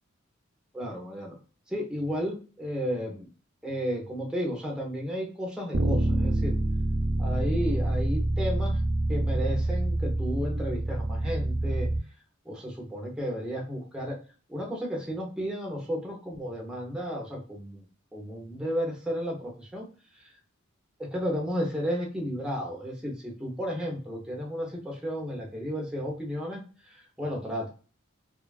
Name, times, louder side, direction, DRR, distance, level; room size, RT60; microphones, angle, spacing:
voice 1, 0.7-1.4 1.7-3.3 3.6-6.6 7.2-8.8 9.1-11.9 12.5-14.2 14.5-17.8 18.1-19.9 21.0-26.6 26.9-27.7, equal, 5° right, -1 dB, 0.6 m, -33 dB
Bass guitar, 5.7-12.0, right 1 dB, 55° right, 0.5 m, -27 dB
2.6 x 2.2 x 2.2 m, 0.38 s
head